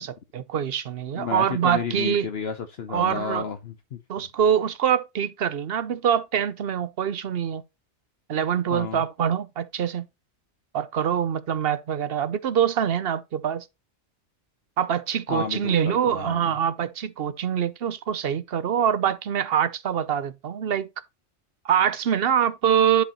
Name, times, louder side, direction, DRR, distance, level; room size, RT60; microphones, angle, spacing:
voice 1, 0.0-2.3 2.9-3.5 4.1-7.6 8.3-10.1 10.7-13.6 14.8-20.9 21.6-23.0, right 8 dB, 60° right, 0.9 m, -24 dB
voice 2, 1.1-4.0 8.7-9.0 15.3-16.4, left 6 dB, 65° left, 1.0 m, -32 dB
10.5 x 5.0 x 2.9 m
omnidirectional pair, 1.2 m